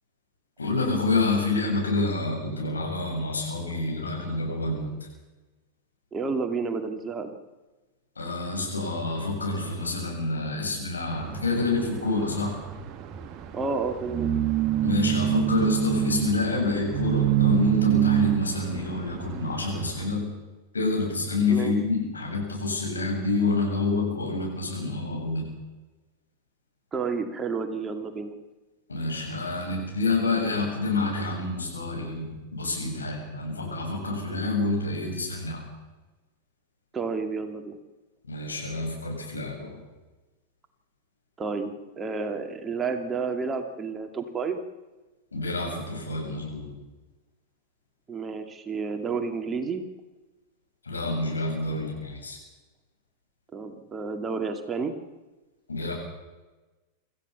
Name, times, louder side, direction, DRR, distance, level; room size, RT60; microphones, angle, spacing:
voice 1, 0.6-4.9 8.2-12.5 14.8-20.3 20.7-25.5 28.9-35.6 38.3-39.8 45.3-46.7 50.9-52.4 55.7-55.9, left 3 dB, 75° left, 0 dB, 7.8 m, -28 dB
voice 2, 6.1-7.4 13.5-14.3 21.5-21.7 26.9-28.3 36.9-37.8 41.4-44.6 48.1-49.8 53.5-54.9, right 4 dB, 20° right, 6 dB, 2.3 m, -30 dB
sound 1, 11.1-20.1, right 11 dB, 35° right, 1.5 m, -26 dB
26.0 x 15.0 x 7.1 m, 1.2 s
figure-of-eight pair, 90°, 0 cm